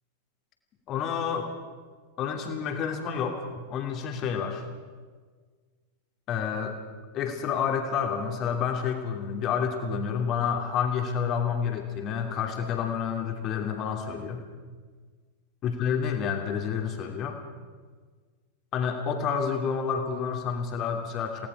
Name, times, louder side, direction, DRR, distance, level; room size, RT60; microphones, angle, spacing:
voice 1, 0.9-1.5 2.2-4.6 6.3-6.8 7.1-14.4 15.6-17.4 18.7-21.5, left 7 dB, 35° left, 4 dB, 2.9 m, -29 dB
29.0 x 18.5 x 4.9 m, 1.5 s
figure-of-eight pair, 90°, 0 cm